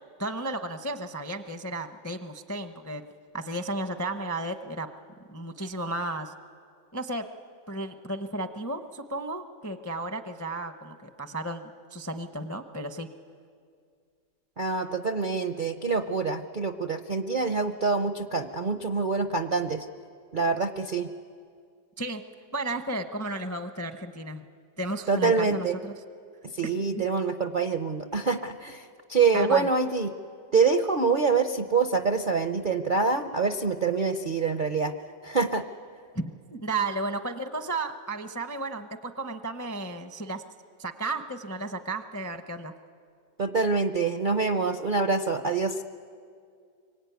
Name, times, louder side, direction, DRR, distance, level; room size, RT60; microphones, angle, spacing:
voice 1, 0.2-3.0 3.3-4.9 5.3-6.3 6.9-7.3 7.7-13.1 22.0-22.2 22.5-24.5 24.8-25.9 26.9-27.1 29.3-29.7 36.1-40.4 40.8-42.7, right 2 dB, 20° left, 7 dB, 0.4 m, -33 dB
voice 2, 14.6-19.9 20.3-21.1 25.1-25.8 26.5-30.1 30.5-34.9 35.2-35.6 43.4-45.8, right 4 dB, 50° right, 8 dB, 0.5 m, -26 dB
25.0 x 24.0 x 9.4 m, 2.3 s
omnidirectional pair, 1.9 m